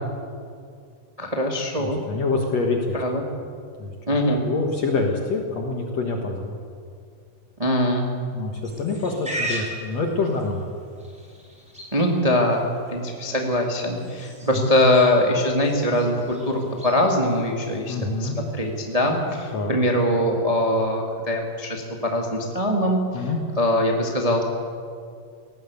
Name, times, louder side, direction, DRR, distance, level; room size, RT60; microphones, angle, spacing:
voice 1, 1.2-2.0 2.9-3.2 4.1-4.4 7.6-8.1 11.9-23.3 23.6-24.4, left 1 dB, 15° right, 1 dB, 1.2 m, -22 dB
voice 2, 1.8-2.9 3.8-3.9 4.4-6.6 8.3-10.6 14.4-14.7 17.9-18.4 19.5-19.8 23.1-23.4, left 3 dB, 55° left, 2 dB, 2.3 m, -26 dB
Livestock farm animals working animals, 8.6-19.5, equal, ahead, 4.2 m, -39 dB
18.5 x 17.0 x 8.3 m, 2.3 s
omnidirectional pair, 4.0 m